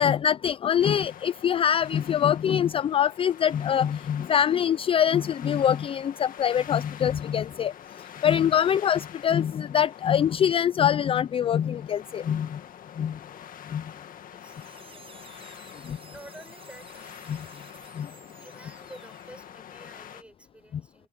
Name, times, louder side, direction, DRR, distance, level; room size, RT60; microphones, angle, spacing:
voice 1, 0.0-7.7 8.2-12.6 13.0-13.2 13.7-13.8 15.8-16.0 17.3-17.5 18.0-18.1, left 9 dB, 35° left, 0.4 m, -24 dB
sound 1, 0.8-20.2, left 10 dB, 55° left, 1.8 m, -46 dB
voice 2, 13.9-15.2 16.1-17.0 18.4-21.1, right 1 dB, 5° right, 6.6 m, -50 dB
sound 2, 14.4-19.5, right 6 dB, 35° right, 6.1 m, -53 dB
cardioid pair, 110°, 17 cm